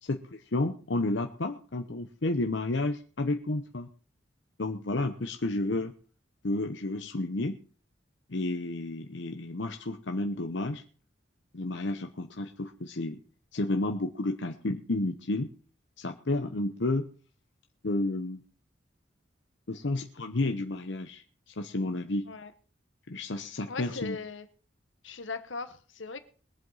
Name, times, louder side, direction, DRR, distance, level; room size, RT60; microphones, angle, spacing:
voice 1, 0.0-3.9 4.6-5.9 6.4-7.6 8.3-10.8 11.5-13.2 13.5-15.5 16.0-17.1 17.8-18.4 19.7-22.3 23.1-24.2, left 2 dB, 70° left, 0.9 m, -31 dB
voice 2, 23.7-24.5 25.0-26.2, left 4 dB, 85° left, 1.3 m, -38 dB
22.0 x 7.8 x 4.0 m
head